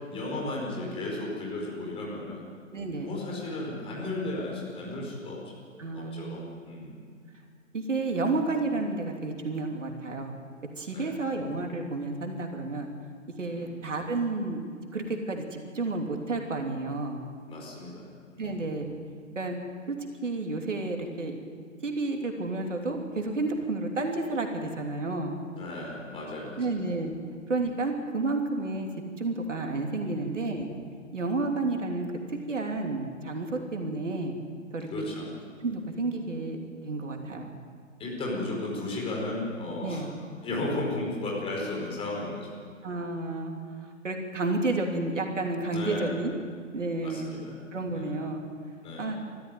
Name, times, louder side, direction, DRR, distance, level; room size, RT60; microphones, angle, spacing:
voice 1, 0.1-2.4 3.0-5.4 5.9-6.9 10.9-11.1 13.5-13.7 17.5-18.1 18.4-18.6 25.5-26.7 30.0-30.3 34.9-35.3 38.0-40.0 40.4-42.5 45.7-46.1 47.0-47.5 47.9-48.1 48.8-49.1, left 2 dB, 15° left, -3 dB, 4.9 m, -34 dB
voice 2, 2.7-3.2 5.8-6.6 7.7-10.4 10.8-12.9 13.4-14.6 14.9-17.2 18.4-18.9 19.3-19.6 19.9-20.0 20.2-21.4 21.8-25.4 26.6-27.1 27.5-28.9 29.2-30.7 31.1-34.3 34.7-35.0 35.6-36.6 36.8-37.5 39.8-40.1 42.8-46.3 46.7-47.3 47.7-48.4 49.0-49.2, right 2 dB, 65° right, 3 dB, 3.1 m, -31 dB
23.5 x 14.5 x 9.2 m, 2.1 s
figure-of-eight pair, 130°, 40 cm